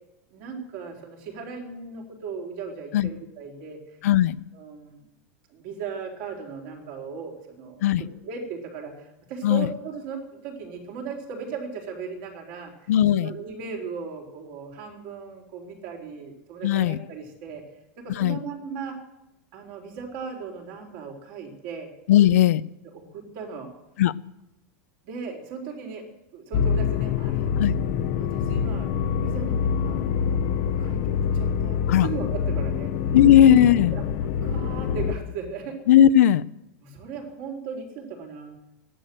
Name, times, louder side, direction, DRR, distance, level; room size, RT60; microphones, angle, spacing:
voice 1, 0.3-3.8 4.5-5.1 5.5-7.8 8.2-12.7 13.1-17.6 18.0-19.0 19.5-21.9 22.9-23.7 25.0-26.0 26.3-27.5 28.2-30.0 30.8-32.9 33.9-34.0 34.4-35.8 36.8-38.6, right 5 dB, 45° right, 1 dB, 3.8 m, -37 dB
voice 2, 4.0-4.3 7.8-8.0 9.4-9.7 12.9-13.3 16.6-17.0 18.1-18.4 22.1-22.6 24.0-24.1 27.6-27.8 31.9-32.1 33.1-34.0 35.9-36.4, left 11 dB, 80° left, 15 dB, 0.6 m, -17 dB
sound 1, 26.5-35.1, left 7 dB, 40° left, 0.9 m, -25 dB
15.0 x 11.0 x 7.7 m, 0.88 s
supercardioid pair, 175°, 8 cm